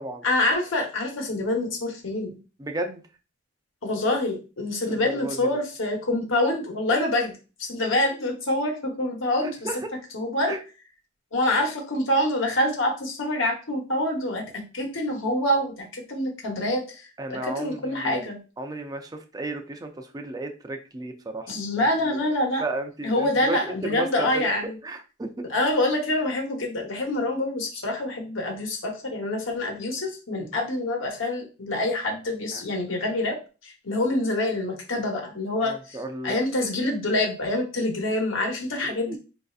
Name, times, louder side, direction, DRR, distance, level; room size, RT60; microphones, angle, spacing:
voice 1, 0.2-2.4 3.8-9.6 10.1-10.6 11.3-14.4 14.7-17.1 17.6-18.4 21.5-22.6 23.0-24.8 25.5-33.4 33.6-36.0 36.2-39.2, left 1 dB, 80° left, 1 dB, 1.0 m, -26 dB
voice 2, 2.6-3.0 4.9-5.6 9.4-9.8 10.5-10.6 17.2-18.3 18.6-21.5 21.8-21.9 22.6-24.5 24.8-25.5 32.5-32.6 35.6-36.4 38.8-39.2, right 2 dB, 20° right, 6 dB, 0.4 m, -34 dB
4.3 x 2.6 x 2.4 m, 0.34 s
head